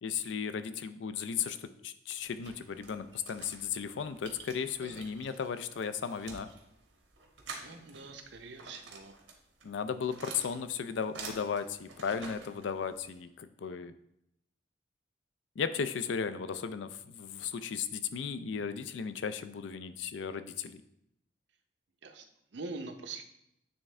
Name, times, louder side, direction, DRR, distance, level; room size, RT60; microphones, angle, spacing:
voice 1, 0.0-6.5 9.6-13.9 15.6-20.8, left 6 dB, 80° left, 11 dB, 0.4 m, -35 dB
sound 1, 2.1-13.2, right 4 dB, 90° right, 1.2 m, -49 dB
voice 2, 7.6-9.2 22.0-22.2 22.5-23.2, right 3 dB, 75° right, 6 dB, 0.6 m, -44 dB
8.6 x 3.6 x 3.2 m, 0.79 s
head